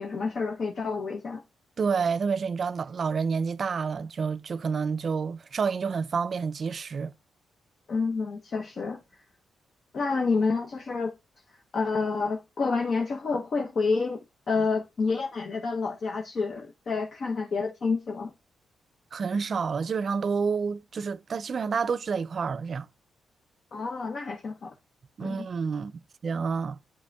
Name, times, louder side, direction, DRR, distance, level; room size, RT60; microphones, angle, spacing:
voice 1, 0.0-1.4 7.9-9.0 9.9-11.1 11.7-14.2 14.5-18.3 23.7-24.7 25.2-25.5, left 4 dB, 55° left, 0.6 m, -28 dB
voice 2, 1.8-7.1 19.1-22.9 25.2-26.8, right 5 dB, 50° right, 0.3 m, -29 dB
8.3 x 7.2 x 2.2 m
cardioid pair, 90°, 0 cm